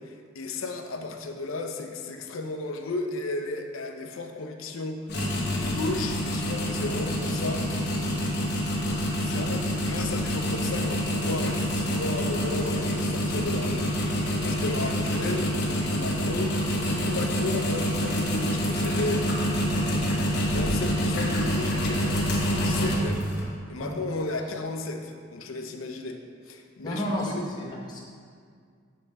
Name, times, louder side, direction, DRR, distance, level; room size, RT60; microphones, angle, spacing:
voice 1, 0.0-5.0 5.4-7.9 9.2-19.6 20.5-22.2 22.5-23.2 23.7-26.2 26.5-27.5, left 2 dB, 75° left, 5 dB, 0.6 m, -34 dB
sound 1, 5.1-23.4, equal, 55° left, 1.0 m, -27 dB
voice 2, 26.8-28.0, equal, 20° left, -4 dB, 0.9 m, -31 dB
6.9 x 3.3 x 5.2 m, 2.1 s
head